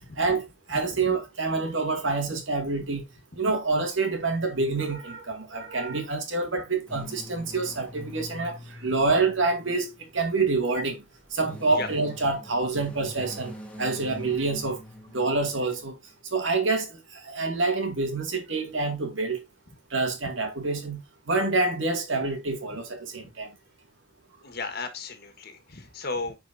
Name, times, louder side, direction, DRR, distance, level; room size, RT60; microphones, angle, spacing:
voice 1, 0.2-3.0 3.4-11.0 11.3-13.5 13.8-14.8 15.1-16.0 16.3-16.9 17.2-19.4 19.9-21.0 21.3-23.5, right 3 dB, 80° right, 2.2 m, -27 dB
sound 1, 6.9-10.3 11.1-15.9, left 1 dB, 5° left, 1.5 m, -44 dB
voice 2, 24.4-26.4, left 3 dB, 55° left, 1.5 m, -34 dB
10.5 x 4.7 x 2.7 m
head